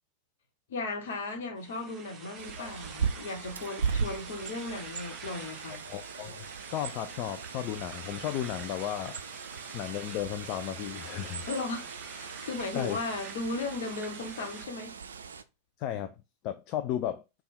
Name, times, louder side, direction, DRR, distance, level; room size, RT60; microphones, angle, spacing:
voice 1, 0.7-5.8 11.5-15.0, left 3 dB, 60° left, 1.1 m, -36 dB
sound 1, 1.6-14.7, right 5 dB, 25° right, 0.8 m, -47 dB
Bird, 2.4-15.4, right 5 dB, 70° right, 0.4 m, -38 dB
voice 2, 5.7-11.5 12.7-13.0 15.8-16.2 16.4-17.2, left 11 dB, 40° left, 0.3 m, -35 dB
3.5 x 2.3 x 4.3 m
figure-of-eight pair, 90°, 0 cm